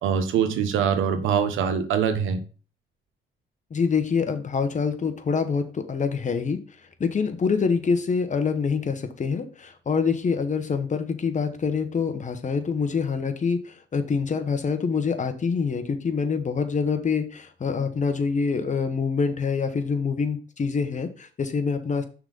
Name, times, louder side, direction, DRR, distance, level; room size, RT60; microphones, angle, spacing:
voice 1, 0.0-2.4, right 7 dB, 85° right, 9 dB, 1.0 m, -23 dB
voice 2, 3.7-6.6 7.0-22.0, left 5 dB, 40° left, 8 dB, 1.1 m, -25 dB
6.0 x 3.8 x 5.4 m, 0.37 s
cardioid pair, 90°, 20 cm